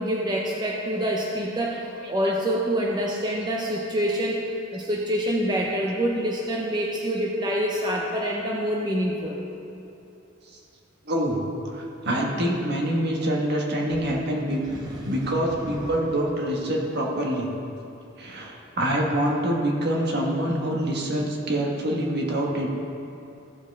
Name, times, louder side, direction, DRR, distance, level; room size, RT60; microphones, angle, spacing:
voice 1, 0.0-9.4 14.7-16.0, equal, 20° right, -3 dB, 0.7 m, -27 dB
voice 2, 11.0-14.6 15.0-17.5 18.2-22.7, right 1 dB, 55° right, -1 dB, 1.5 m, -25 dB
15.0 x 7.1 x 3.5 m, 2.8 s
head